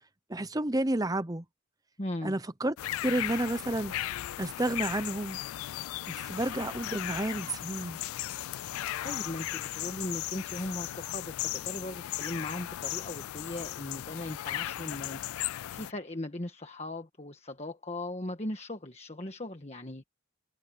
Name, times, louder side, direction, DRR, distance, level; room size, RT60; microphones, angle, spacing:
voice 1, 0.3-1.4 2.2-2.7 3.0-3.9 4.4-5.4 6.1-8.0, right 1 dB, 15° right, 0.8 m, -31 dB
voice 2, 2.0-2.4 8.5-20.1, left 1 dB, 30° left, 1.5 m, -39 dB
sound 1, 2.8-15.9, left 14 dB, 85° left, 0.3 m, -36 dB
head